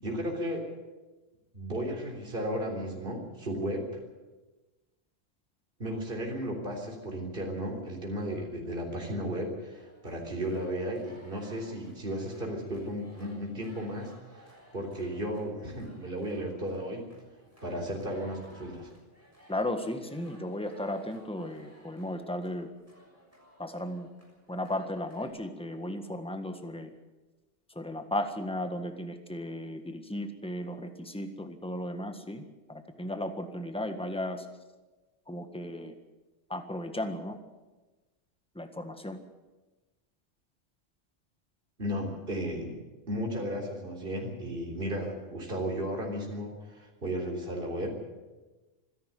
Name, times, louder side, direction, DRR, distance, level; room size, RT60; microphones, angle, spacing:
voice 1, 0.0-0.7 1.5-3.9 5.8-14.4 14.7-17.1 17.6-18.9 41.8-42.8 43.1-47.9, equal, 45° right, 1 dB, 4.0 m, -34 dB
sound 1, 9.7-25.3, equal, 10° right, 6.5 m, -58 dB
voice 2, 19.5-22.7 23.6-24.1 24.5-26.9 27.7-34.5 35.3-36.0 36.5-37.4 38.5-39.2, left 1 dB, 5° left, 7 dB, 1.6 m, -35 dB
25.5 x 11.0 x 9.4 m, 1.2 s
omnidirectional pair, 1.3 m